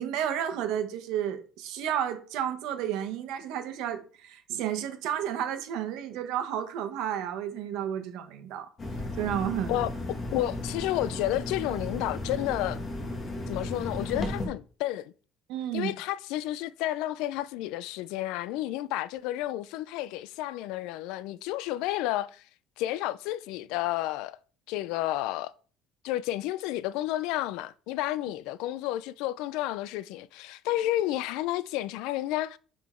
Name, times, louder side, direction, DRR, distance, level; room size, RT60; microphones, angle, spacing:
voice 1, 0.0-8.7 9.2-9.8 15.5-15.9, right 10 dB, 70° right, 1.1 m, -32 dB
sound 1, 8.8-14.5, left 2 dB, 25° left, 1.1 m, -35 dB
voice 2, 10.3-12.8 13.5-15.1 15.7-22.4 22.8-24.4 24.7-25.5 26.0-32.6, left 14 dB, 80° left, 0.3 m, -31 dB
6.0 x 3.8 x 4.3 m
cardioid pair, 170°, 0 cm